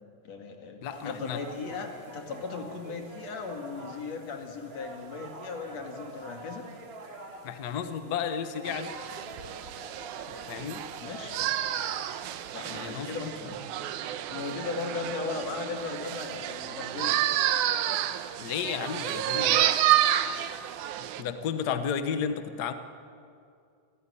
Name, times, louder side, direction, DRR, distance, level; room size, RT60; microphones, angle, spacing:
voice 1, 0.2-6.7 11.0-11.5 12.5-13.6 14.3-17.2 21.2-21.7, left 4 dB, 60° left, 4 dB, 3.3 m, -37 dB
voice 2, 0.8-1.4 7.4-8.9 10.5-10.8 12.7-13.2 18.4-19.7 21.2-22.7, left 7 dB, 85° left, 10 dB, 0.8 m, -32 dB
sound 1, 0.9-13.0, right 2 dB, 35° right, 1.0 m, -46 dB
sound 2, 8.7-21.2, right 12 dB, 90° right, 2.3 m, -30 dB
26.5 x 15.5 x 10.0 m, 2.4 s
omnidirectional pair, 3.5 m